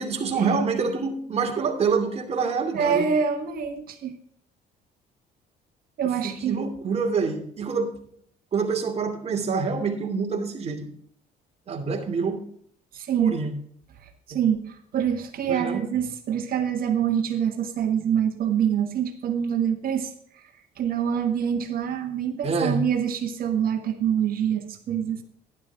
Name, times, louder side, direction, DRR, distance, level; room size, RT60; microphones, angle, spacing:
voice 1, 0.0-3.1 6.2-7.9 8.5-10.9 11.7-12.4 13.2-13.5 14.3-14.4 15.5-15.9 22.4-22.8, right 5 dB, 40° right, 3 dB, 2.8 m, -26 dB
voice 2, 2.7-4.2 6.0-6.6 12.9-13.4 14.3-20.4 20.8-25.2, right 8 dB, 60° right, 5 dB, 1.6 m, -25 dB
11.5 x 11.5 x 3.6 m, 0.64 s
cardioid pair, 110°, 17 cm